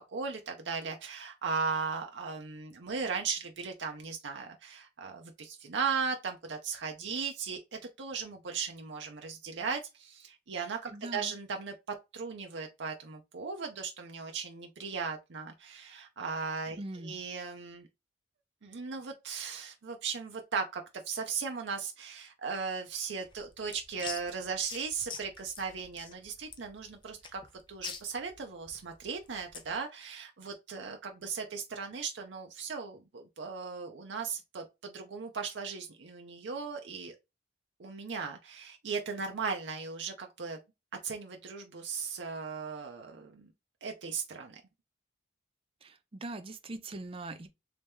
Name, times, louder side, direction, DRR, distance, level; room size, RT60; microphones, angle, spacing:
voice 1, 0.0-11.7 12.1-17.9 18.6-27.4 27.7-37.2 37.8-40.6 41.0-43.5 43.8-44.6, right 5 dB, 80° right, 0.6 m, -37 dB
voice 2, 10.9-11.3 16.8-17.2 45.8-47.5, right 2 dB, 30° right, 0.5 m, -41 dB
sound 1, 23.2-29.8, left 5 dB, 25° left, 0.5 m, -46 dB
3.2 x 2.8 x 3.5 m
head